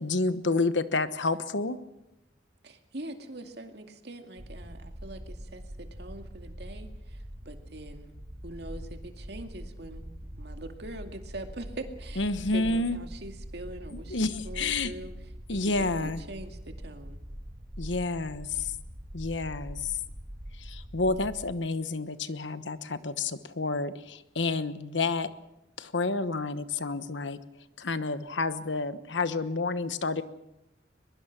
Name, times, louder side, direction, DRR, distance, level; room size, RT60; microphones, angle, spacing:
voice 1, 0.0-1.8 12.2-13.0 14.1-14.9 15.5-16.2 17.8-18.7 19.1-19.9 20.6-25.3 25.8-27.4 27.8-30.2, left 3 dB, 80° left, 12 dB, 1.2 m, -29 dB
voice 2, 2.6-8.1 8.4-10.0 10.4-15.1 15.5-17.2, right 1 dB, 60° right, 5 dB, 2.3 m, -43 dB
sound 1, 4.4-21.5, equal, 35° right, 1.8 m, -43 dB
22.5 x 22.0 x 6.1 m, 0.89 s
head